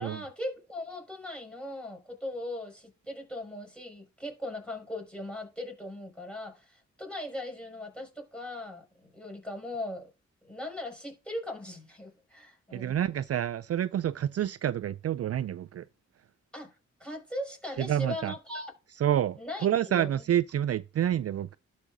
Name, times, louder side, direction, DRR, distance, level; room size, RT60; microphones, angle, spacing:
voice 1, 0.0-10.1 10.4-12.9 16.5-16.7 17.0-18.7 19.4-20.2, left 1 dB, 5° left, 6.0 m, -39 dB
voice 2, 12.7-15.8 17.8-18.3 19.0-21.6, right 10 dB, 55° right, 0.4 m, -28 dB
12.0 x 4.9 x 3.8 m
cardioid pair, 60°, 29 cm